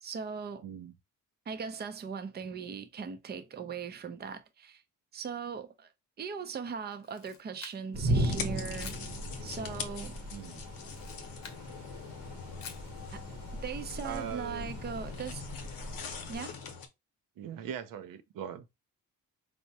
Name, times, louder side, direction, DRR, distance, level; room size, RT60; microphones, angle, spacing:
voice 1, 0.0-0.6 1.5-4.8 5.1-5.9 6.2-8.9 9.4-10.2 13.1-13.2 13.6-15.4 16.3-16.5, right 6 dB, 30° right, 0.5 m, -39 dB
voice 2, 0.6-0.9 10.3-10.6 14.0-14.7 17.4-18.7, right 8 dB, 75° right, 0.6 m, -40 dB
Camera, 6.9-8.1 8.8-9.1 10.8-11.7 12.6-12.9, left 6 dB, 50° left, 0.8 m, -48 dB
sound 1, 7.9-16.4, right 1 dB, 45° right, 0.9 m, -37 dB
sound 2, 8.1-16.9, left 6 dB, 85° left, 0.8 m, -43 dB
4.7 x 2.1 x 2.7 m
cardioid pair, 100°, 34 cm